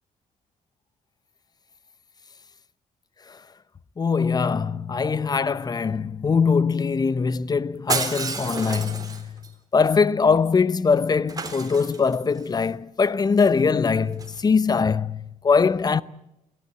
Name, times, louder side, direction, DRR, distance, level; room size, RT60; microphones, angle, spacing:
voice 1, 4.0-9.4 9.7-16.0, left 5 dB, 30° left, 0.8 m, -22 dB
Shatter, 7.9-9.5 11.3-12.4 14.1-14.4, right 4 dB, 25° right, 3.5 m, -30 dB
24.5 x 17.0 x 8.1 m
cardioid pair, 115°, 14 cm